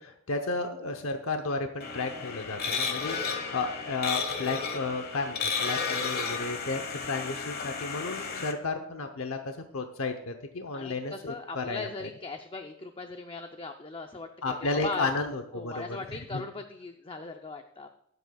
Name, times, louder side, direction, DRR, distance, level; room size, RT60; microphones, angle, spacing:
voice 1, 0.0-12.1 14.4-16.4, left 3 dB, 85° left, 6 dB, 0.8 m, -33 dB
sound 1, 1.8-8.5, left 5 dB, 50° left, 1.2 m, -33 dB
voice 2, 6.9-7.3 10.7-15.1 15.5-17.9, left 3 dB, 25° left, 5 dB, 0.6 m, -39 dB
20.5 x 8.0 x 2.3 m, 0.76 s
head